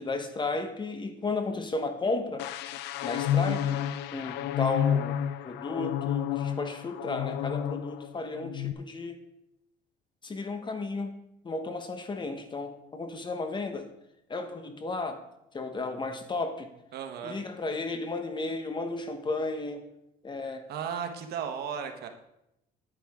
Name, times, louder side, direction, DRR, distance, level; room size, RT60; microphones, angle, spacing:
voice 1, 0.0-2.5 3.0-3.8 4.1-5.2 5.4-9.2 10.2-11.1 11.4-13.9 14.3-15.2 15.5-16.7 17.2-19.9 20.2-20.7, left 3 dB, 25° left, 7 dB, 1.2 m, -33 dB
sound 1, 2.4-8.1 8.4-8.7, left 9 dB, 90° left, 0.5 m, -30 dB
voice 2, 16.9-17.4 20.7-22.1, right 7 dB, 70° right, 6 dB, 1.3 m, -35 dB
10.0 x 9.8 x 3.7 m, 0.82 s
cardioid pair, 110°, 17 cm